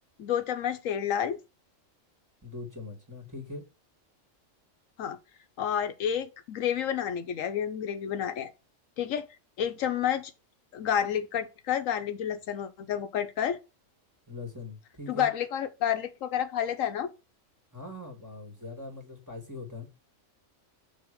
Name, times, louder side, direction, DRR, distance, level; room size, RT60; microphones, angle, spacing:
voice 1, 0.2-1.4 5.0-5.2 5.6-8.5 9.0-9.3 9.6-10.3 10.7-13.6 15.1-17.1, left 9 dB, 85° left, 1.2 m, -30 dB
voice 2, 2.4-3.6 14.3-15.3 17.7-19.9, left 3 dB, 15° right, 2.0 m, -41 dB
6.3 x 3.4 x 4.9 m
omnidirectional pair, 1.3 m